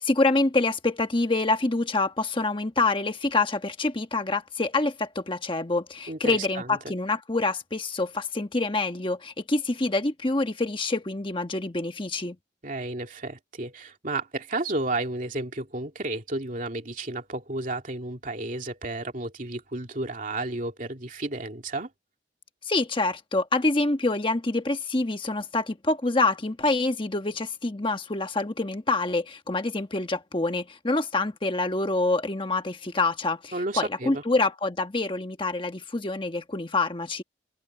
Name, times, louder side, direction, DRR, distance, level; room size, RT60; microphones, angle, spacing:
voice 1, 0.0-12.4 22.6-37.2, left 2 dB, 25° left, 1.2 m, -26 dB
voice 2, 6.1-6.9 12.6-21.9 33.5-34.2, right 2 dB, 45° right, 2.6 m, -32 dB
open air
head